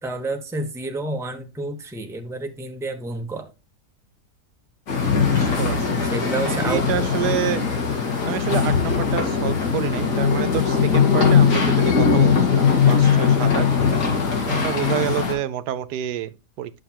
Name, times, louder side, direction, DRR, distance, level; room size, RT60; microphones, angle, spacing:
voice 1, 0.0-3.5 6.0-7.1, right 2 dB, 5° right, 0.6 m, -29 dB
sound 1, 4.9-15.3, left 6 dB, 75° left, 2.5 m, -20 dB
voice 2, 5.2-7.6 8.3-13.7 14.5-16.7, right 11 dB, 75° right, 1.2 m, -28 dB
9.0 x 6.3 x 2.9 m
omnidirectional pair, 1.8 m